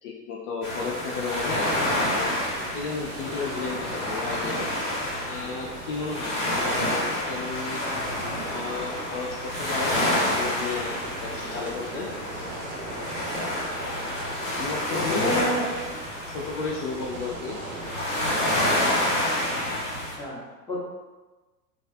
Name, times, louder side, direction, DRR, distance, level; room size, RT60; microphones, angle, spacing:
voice 1, 0.0-1.7 2.1-4.6 5.3-7.8 8.5-12.1 14.6-15.5 16.3-17.6, left 4 dB, 50° left, -2 dB, 0.5 m, -33 dB
sound 1, 0.6-20.2, left 1 dB, 80° left, 1.1 m, -29 dB
sound 2, 1.3-19.1, right 2 dB, 50° right, 0.7 m, -40 dB
voice 2, 14.9-15.7 19.9-20.4 20.7-20.8, equal, 10° left, -7 dB, 0.7 m, -29 dB
2.4 x 2.3 x 2.4 m, 1.2 s
hypercardioid pair, 95°, 47 cm